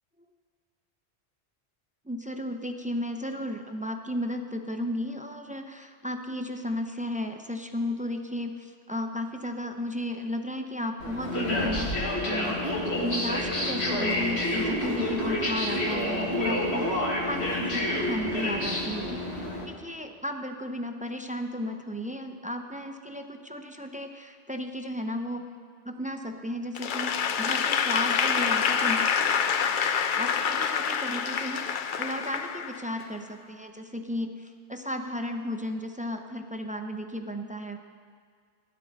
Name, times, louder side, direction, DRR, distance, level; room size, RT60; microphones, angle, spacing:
voice 1, 2.0-12.6 12.9-25.4 25.8-29.1 30.2-37.8, left 1 dB, 10° right, 5 dB, 0.5 m, -34 dB
sound 1, 11.0-19.7, left 1 dB, 75° left, 2.1 m, -28 dB
Applause / Crowd, 26.8-33.1, left 7 dB, 55° left, 0.7 m, -27 dB
16.5 x 10.5 x 4.0 m, 2.1 s
omnidirectional pair, 1.1 m